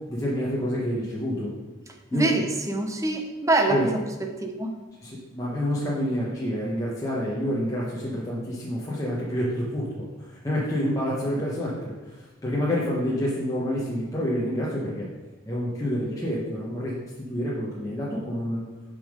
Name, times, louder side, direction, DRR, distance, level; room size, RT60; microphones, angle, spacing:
voice 1, 0.1-1.5 2.1-2.3 3.7-3.9 5.0-15.1 15.4-17.0 17.3-18.6, equal, 15° left, -6 dB, 1.0 m, -28 dB
voice 2, 2.1-4.0 4.3-4.8, right 2 dB, 15° right, 4 dB, 0.7 m, -25 dB
6.8 x 5.3 x 5.1 m, 1.2 s
head